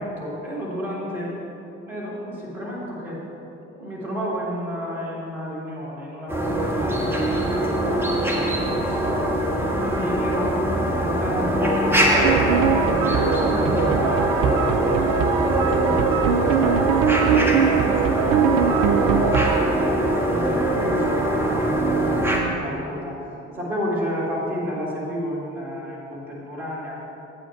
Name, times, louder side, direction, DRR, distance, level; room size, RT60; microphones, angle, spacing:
voice 1, 0.0-1.4 1.9-3.2 3.7-9.3 9.8-15.0 15.4-19.3 19.7-23.2 23.5-27.0, equal, 80° right, -6 dB, 1.9 m, -31 dB
sound 1, 6.3-22.4, right 1 dB, 5° right, 1.5 m, -22 dB
sound 2, 12.1-19.6, right 8 dB, 60° right, 0.5 m, -22 dB
8.4 x 6.4 x 5.9 m, 2.9 s
figure-of-eight pair, 45°, 37 cm